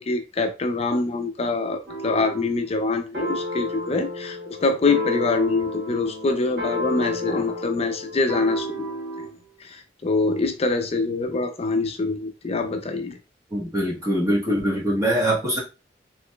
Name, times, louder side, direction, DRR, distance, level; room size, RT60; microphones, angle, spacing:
voice 1, 0.0-8.8 9.6-13.2, left 3 dB, 35° left, 0.5 m, -24 dB
sound 1, 1.9-2.5 3.1-9.4, left 1 dB, 65° right, 1.0 m, -31 dB
voice 2, 13.5-15.6, equal, 20° right, 1.0 m, -23 dB
3.9 x 3.0 x 2.2 m
head